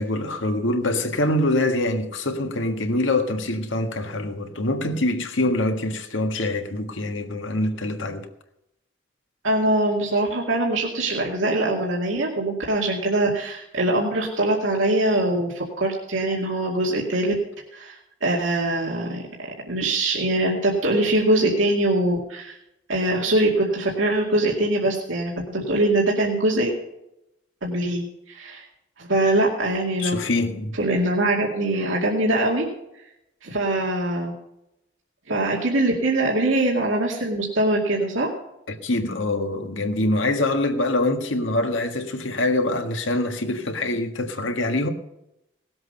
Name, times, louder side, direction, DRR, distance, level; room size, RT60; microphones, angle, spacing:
voice 1, 0.0-8.3 30.0-30.8 38.7-44.9, left 2 dB, 85° left, 1.6 m, -24 dB
voice 2, 9.4-17.3 17.7-22.6 22.9-26.7 27.6-28.6 29.0-30.2 30.8-32.6 33.4-34.3 35.3-38.3, right 1 dB, 90° right, 2.3 m, -23 dB
19.0 x 7.9 x 5.4 m
head